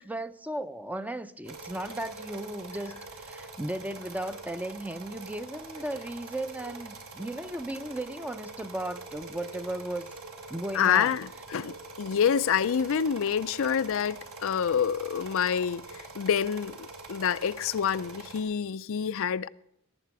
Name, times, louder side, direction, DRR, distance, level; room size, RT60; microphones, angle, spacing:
voice 1, 0.0-10.1 10.5-11.2, right 1 dB, 5° right, 0.5 m, -36 dB
sound 1, 1.4-18.4, right 3 dB, 70° right, 2.7 m, -44 dB
voice 2, 10.7-19.5, left 7 dB, 65° left, 0.4 m, -27 dB
17.0 x 9.2 x 4.7 m
head